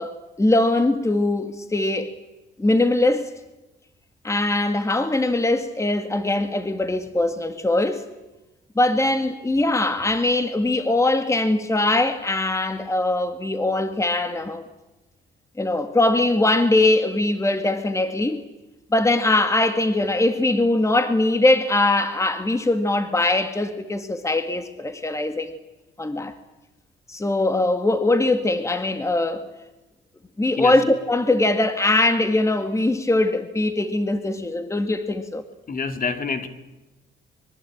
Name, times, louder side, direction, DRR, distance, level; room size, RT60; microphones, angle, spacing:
voice 1, 0.0-2.1 2.6-3.3 4.2-8.0 8.8-14.6 15.6-18.4 18.9-25.6 26.0-26.3 27.1-29.4 30.4-35.4, left 2 dB, 15° left, 1.9 m, -21 dB
voice 2, 35.7-36.5, left 4 dB, 45° left, 2.6 m, -27 dB
25.0 x 23.0 x 8.7 m
cardioid pair, 90°, 20 cm